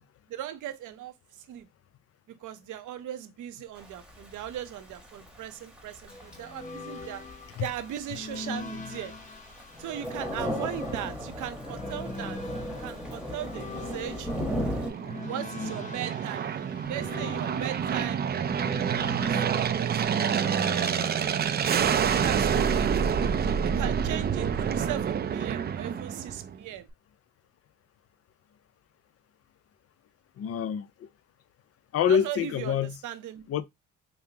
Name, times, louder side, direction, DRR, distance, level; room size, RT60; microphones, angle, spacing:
voice 1, 0.3-1.1 1.5-1.7 2.4-7.2 7.6-9.1 9.8-12.4 12.8-14.3 15.2-16.5 16.9-18.3 18.7-19.2 19.5-21.4 22.2-22.9 23.8-26.9 32.1-33.4, right 11 dB, 80° right, 0.7 m, -38 dB
Thunder / Rain, 3.8-14.9, equal, 5° right, 1.1 m, -36 dB
sound 1, 6.1-21.8, left 3 dB, 25° left, 0.8 m, -42 dB
Aircraft, 13.9-26.6, right 7 dB, 35° right, 0.4 m, -28 dB
voice 2, 30.4-31.1 31.9-33.0 33.5-33.6, left 8 dB, 50° left, 0.5 m, -26 dB
5.2 x 2.0 x 2.7 m
cardioid pair, 90°, 30 cm